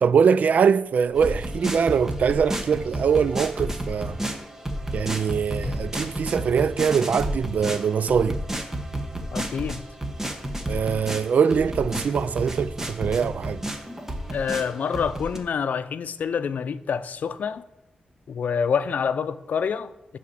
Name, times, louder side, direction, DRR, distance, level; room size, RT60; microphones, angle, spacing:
voice 1, 0.0-4.2 4.9-8.4 10.7-13.6, right 6 dB, 70° right, 0.3 m, -22 dB
sound 1, 1.1-15.4, right 1 dB, 15° right, 1.0 m, -32 dB
sound 2, 2.3-3.0 5.5-6.0 6.8-8.0, left 1 dB, 5° left, 2.7 m, -35 dB
voice 2, 9.3-9.8 14.3-17.6 18.3-20.2, left 6 dB, 80° left, 0.5 m, -27 dB
10.5 x 4.3 x 7.5 m
wide cardioid pair, 125°, 3 cm